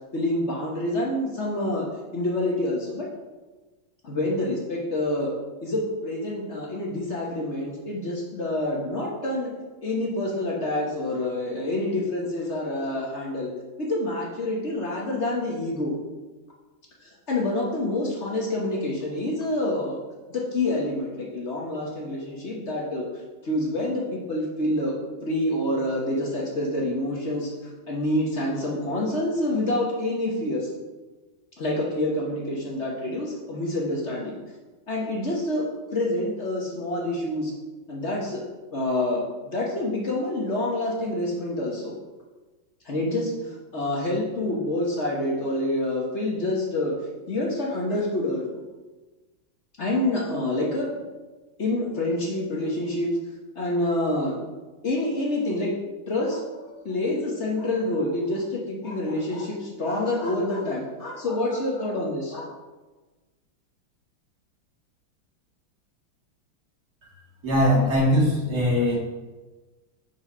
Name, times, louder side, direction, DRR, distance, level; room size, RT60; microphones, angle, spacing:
voice 1, 0.1-1.9 2.1-3.1 4.0-5.3 5.6-9.5 9.8-13.5 13.8-16.0 17.0-20.0 20.3-23.0 23.4-24.9 25.2-27.5 27.9-30.7 31.6-34.4 34.9-35.6 35.9-37.5 37.9-38.4 38.7-41.9 42.8-46.9 47.3-48.4 49.8-50.9 51.6-53.1 53.5-54.3 54.8-55.7 56.1-62.5, left 1 dB, 45° left, -3 dB, 1.1 m, -27 dB
voice 2, 67.4-68.9, left 1 dB, 45° right, -6 dB, 2.5 m, -21 dB
5.5 x 4.7 x 5.4 m, 1.2 s
omnidirectional pair, 2.3 m